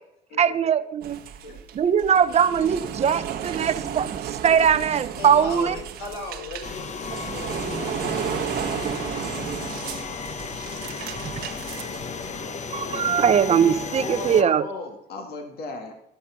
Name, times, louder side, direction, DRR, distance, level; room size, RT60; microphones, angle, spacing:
voice 1, 0.4-1.2 1.7-5.8 12.7-14.6, right 8 dB, 40° right, 12 dB, 0.7 m, -21 dB
sound 1, 1.0-12.4, right 9 dB, 65° right, 1.2 m, -33 dB
voice 2, 5.2-9.4, left 3 dB, 85° left, 2 dB, 4.2 m, -39 dB
sound 2, 6.6-14.4, left 5 dB, 45° left, 0.9 m, -34 dB
voice 3, 12.8-15.9, left 3 dB, 70° left, 4 dB, 2.0 m, -36 dB
12.5 x 6.7 x 5.9 m, 0.82 s
cardioid pair, 110°, 17 cm